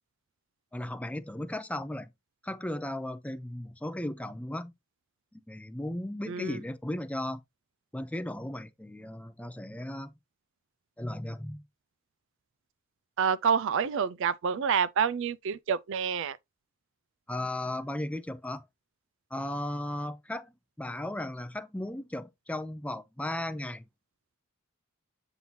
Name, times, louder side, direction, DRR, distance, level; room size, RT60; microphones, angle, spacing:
voice 1, 0.7-2.1 2.4-4.7 5.3-7.4 7.9-10.1 11.0-11.6 17.3-18.6 19.3-20.5 20.8-23.8, left 1 dB, 5° left, 0.5 m, -36 dB
voice 2, 13.2-16.4, right 7 dB, 60° right, 0.4 m, -28 dB
7.7 x 2.7 x 5.6 m
head